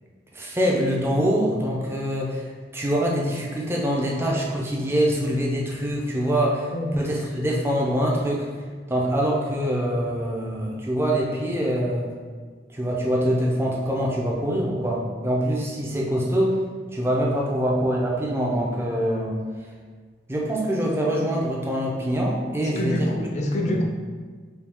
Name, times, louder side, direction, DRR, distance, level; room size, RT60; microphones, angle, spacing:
voice 1, 0.3-8.5 8.9-12.1 12.7-16.6 16.9-19.4 20.3-23.1 23.7-23.8, equal, 15° right, -3 dB, 0.5 m, -24 dB
voice 2, 22.6-23.8, left 1 dB, 40° left, 1 dB, 0.5 m, -26 dB
4.4 x 2.3 x 3.5 m, 1.5 s
head